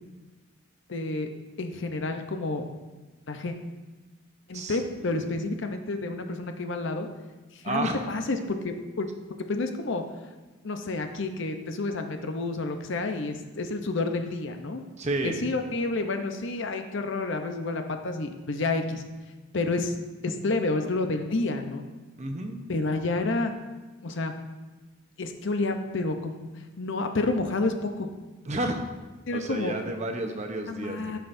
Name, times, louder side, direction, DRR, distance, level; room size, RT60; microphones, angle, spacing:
voice 1, 0.9-1.3 1.6-2.6 3.3-3.5 4.5-7.1 7.5-9.1 9.5-10.0 10.6-14.8 15.2-19.0 19.5-20.0 20.2-21.8 22.7-23.5 24.0-24.3 25.2-26.5 26.8-28.1 29.3-29.7 30.7-31.2, left 2 dB, 60° left, 6 dB, 0.7 m, -29 dB
voice 2, 4.5-5.2 7.6-8.0 15.0-15.4 22.2-22.6 28.5-28.8 29.3-31.2, right 2 dB, 35° right, 4 dB, 0.8 m, -31 dB
14.0 x 5.7 x 2.6 m, 1.2 s
head